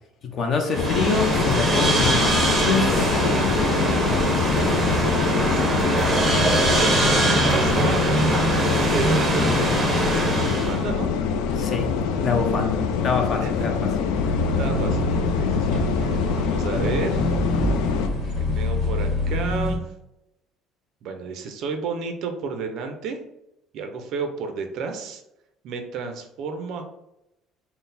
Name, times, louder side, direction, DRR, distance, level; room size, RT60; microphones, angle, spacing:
voice 1, 0.3-3.1 11.6-11.9 12.2-13.7, left 4 dB, 35° left, 4 dB, 0.6 m, -25 dB
sound 1, 0.7-18.1, left 6 dB, 85° left, 0.4 m, -25 dB
sound 2, 0.7-10.8, right 1 dB, 10° right, 0.7 m, -22 dB
voice 2, 5.9-9.6 10.0-11.1 13.4-13.5 14.4-15.1 15.4-17.3 17.9-18.0 18.4-19.9 21.0-23.2 23.7-25.2 25.6-26.9, right 5 dB, 50° right, 5 dB, 0.4 m, -32 dB
sound 3, 14.2-19.8, left 1 dB, 60° left, 1.3 m, -26 dB
3.9 x 2.0 x 3.9 m, 0.88 s
cardioid pair, 165°, 0 cm